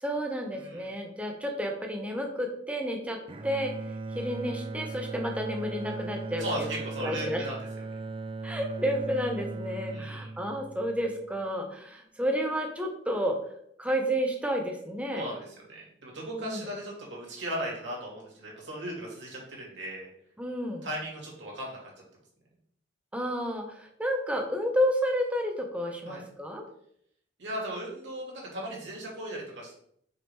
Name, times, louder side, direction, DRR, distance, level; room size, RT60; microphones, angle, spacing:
voice 1, 0.0-3.2 3.4-3.7 4.1-6.7 7.0-7.4 8.4-13.4 13.8-15.3 16.4-16.6 20.4-20.9 23.1-26.6, equal, 5° right, 2 dB, 1.0 m, -31 dB
voice 2, 0.5-0.9 6.4-7.7 7.9-8.0 9.9-10.3 15.1-20.1 20.8-21.8 26.0-26.2 27.4-29.8, right 1 dB, 75° right, -3 dB, 2.6 m, -37 dB
Bowed string instrument, 3.3-11.5, right 3 dB, 30° right, 0.4 m, -38 dB
5.7 x 5.0 x 3.6 m, 0.68 s
head